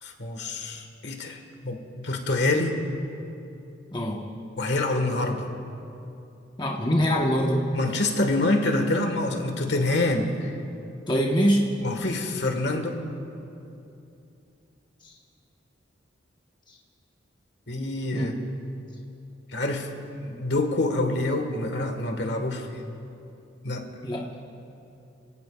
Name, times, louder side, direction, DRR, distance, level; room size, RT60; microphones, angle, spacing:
voice 1, 0.0-2.8 4.6-5.5 7.7-10.5 11.8-13.0 17.7-18.3 19.5-19.9 20.2-22.8 23.6-23.8, left 2 dB, 60° left, 4 dB, 1.5 m, -26 dB
voice 2, 3.9-4.4 6.6-7.7 11.1-11.7 15.0-15.1 16.7-16.8 18.1-18.3 24.0-24.3, equal, 25° left, -1 dB, 1.1 m, -24 dB
28.0 x 17.5 x 2.4 m, 2.7 s
head